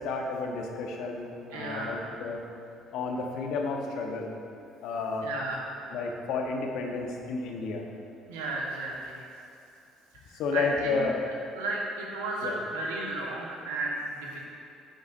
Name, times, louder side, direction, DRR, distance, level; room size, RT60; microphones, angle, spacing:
voice 1, 0.0-2.4 2.9-4.3 4.8-5.3 5.9-7.8 10.4-11.2 12.4-12.5, left 4 dB, 70° left, 2 dB, 1.0 m, -31 dB
voice 2, 1.5-2.0 5.2-5.6 8.3-9.3 10.1-14.4, right 2 dB, 80° right, -2 dB, 1.2 m, -34 dB
10.0 x 7.9 x 2.6 m, 2.6 s
hypercardioid pair, 55°, 0 cm